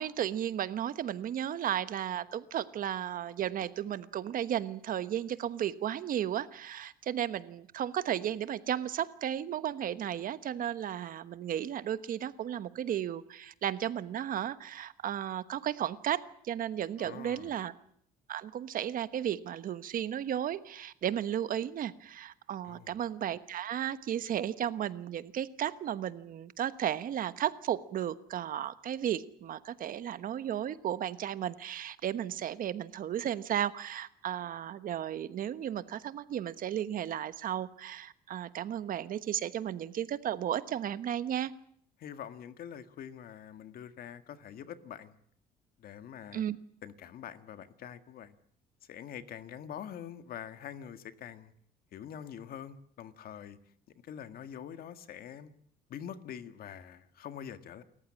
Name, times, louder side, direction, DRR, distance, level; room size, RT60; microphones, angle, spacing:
voice 1, 0.0-17.7 18.3-41.5 46.3-46.6, right 10 dB, 55° right, 14 dB, 1.2 m, -34 dB
voice 2, 17.0-17.6 22.6-22.9 42.0-45.2 45.8-46.4 46.8-48.4 48.8-51.5 51.9-53.6 54.0-55.5 55.9-57.8, left 9 dB, 60° left, 10 dB, 1.8 m, -45 dB
28.0 x 14.5 x 8.7 m, 0.65 s
cardioid pair, 110°, 17 cm